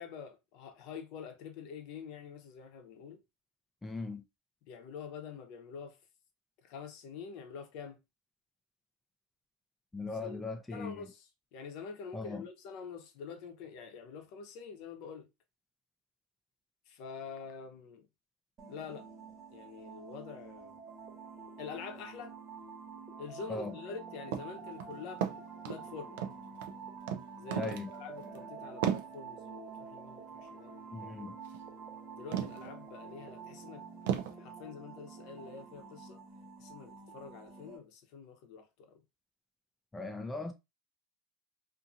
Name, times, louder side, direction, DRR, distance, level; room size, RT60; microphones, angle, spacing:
voice 1, 0.0-3.2 4.7-6.0 6.6-8.0 10.2-10.4 10.7-15.3 16.9-18.1 18.7-19.1 19.5-20.8 21.6-22.4 23.2-26.2 27.4-31.3 32.1-33.9 34.4-36.2 36.6-39.0, left 6 dB, 60° left, 0.7 m, -46 dB
voice 2, 3.8-4.2 9.9-11.1 12.1-12.4 23.5-23.7 27.5-27.9 30.9-31.4 39.9-40.5, left 3 dB, 10° left, 0.4 m, -39 dB
sound 1, 18.6-37.8, right 5 dB, 40° right, 1.1 m, -48 dB
sound 2, 24.3-24.5 24.8-25.8 26.2-26.8 27.1-27.2 27.5-27.9 28.2-28.4 28.8-29.1 31.4-31.6 32.3-32.7 33.2-33.3 34.1-34.3, right 9 dB, 75° right, 0.4 m, -34 dB
2.6 x 2.6 x 2.6 m
hypercardioid pair, 105°, 0 cm